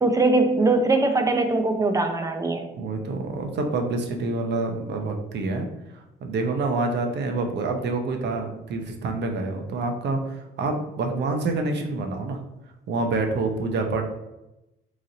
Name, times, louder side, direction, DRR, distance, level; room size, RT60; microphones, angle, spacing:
voice 1, 0.0-2.7, right 2 dB, 15° right, 6 dB, 0.5 m, -21 dB
voice 2, 2.7-5.7 5.9-12.4 12.9-14.0, right 3 dB, 60° right, 3 dB, 0.7 m, -27 dB
3.1 x 2.6 x 3.8 m, 0.95 s
cardioid pair, 90°, 20 cm